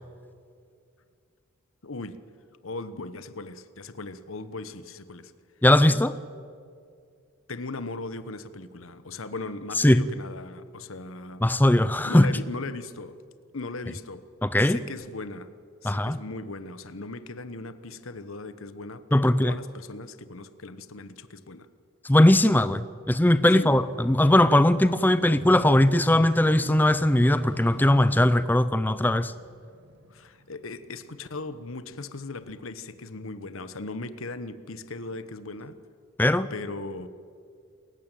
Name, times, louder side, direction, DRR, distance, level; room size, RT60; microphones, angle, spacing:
voice 1, 1.8-2.2 2.6-5.3 7.5-11.4 12.0-13.1 13.5-14.2 14.6-15.5 15.8-21.7 23.5-23.7 30.1-35.8 36.5-37.1, left 3 dB, 75° left, 1.1 m, -38 dB
voice 2, 5.6-6.2 9.8-10.0 11.4-12.3 14.4-14.8 15.8-16.2 19.1-19.5 22.0-29.3 36.2-36.5, left 1 dB, 10° left, 0.5 m, -20 dB
sound 1, 23.0-31.8 32.4-32.5, right 1 dB, 55° right, 1.4 m, -44 dB
27.5 x 15.0 x 9.1 m
head